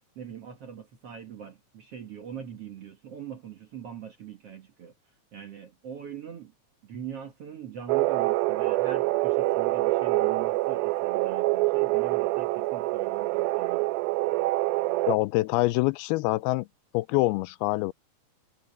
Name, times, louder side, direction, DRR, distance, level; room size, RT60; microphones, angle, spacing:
voice 1, 0.2-4.9 5.3-6.5 6.8-13.9, right 8 dB, 55° right, 1.9 m, -42 dB
sound 1, 7.9-15.2, right 20 dB, 80° right, 2.4 m, -26 dB
voice 2, 15.1-16.7 16.9-17.9, left 20 dB, 85° left, 2.4 m, -25 dB
omnidirectional pair, 4.5 m